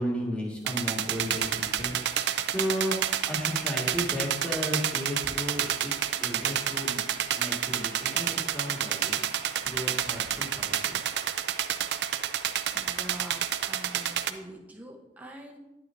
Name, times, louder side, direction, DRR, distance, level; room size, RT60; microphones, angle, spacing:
voice 1, 0.0-3.0 3.3-7.0 7.4-11.0, equal, 5° left, -3 dB, 1.8 m, -34 dB
sound 1, 0.7-14.3, right 10 dB, 70° right, 0.4 m, -29 dB
voice 2, 12.7-15.6, right 1 dB, 10° right, 0 dB, 0.9 m, -44 dB
9.7 x 9.1 x 2.6 m, 0.99 s
head